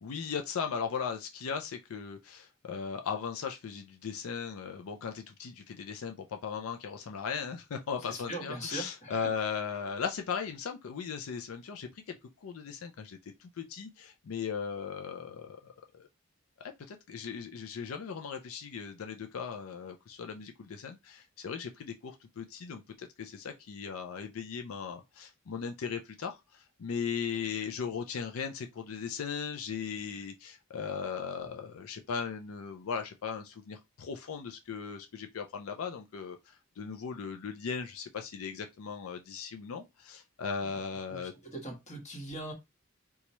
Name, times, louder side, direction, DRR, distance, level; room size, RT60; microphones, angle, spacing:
voice 1, 0.0-16.1 16.6-41.3, left 6 dB, 90° left, 0.4 m, -38 dB
voice 2, 8.1-9.3 40.6-40.7 41.1-42.5, right 1 dB, 35° left, 1.3 m, -41 dB
3.0 x 2.3 x 4.1 m
head